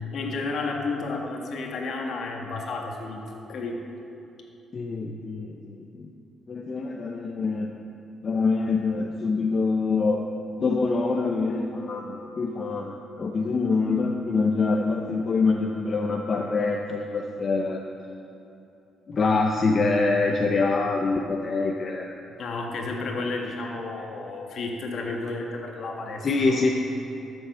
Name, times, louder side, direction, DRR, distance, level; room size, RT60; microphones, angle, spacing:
voice 1, 0.1-3.8 22.4-26.6, left 3 dB, 65° left, 1 dB, 1.6 m, -32 dB
voice 2, 4.7-6.1 6.5-7.7 8.2-10.2 10.6-17.8 19.1-22.2 26.2-26.7, left 3 dB, 45° left, 1 dB, 0.8 m, -25 dB
13.0 x 7.1 x 5.6 m, 2.8 s
cardioid pair, 90°, 0 cm